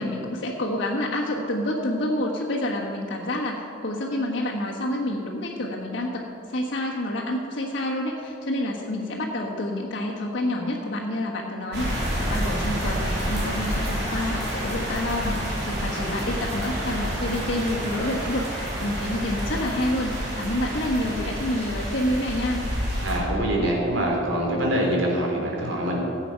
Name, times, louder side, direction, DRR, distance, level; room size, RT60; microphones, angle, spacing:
voice 1, 0.0-6.2 6.5-22.7, left 1 dB, 65° left, -6 dB, 1.5 m, -28 dB
sound 1, 11.7-23.2, equal, 60° right, 3.4 m, -29 dB
voice 2, 23.0-26.0, right 1 dB, 80° right, -1 dB, 3.2 m, -24 dB
15.5 x 8.2 x 5.8 m, 2.6 s
head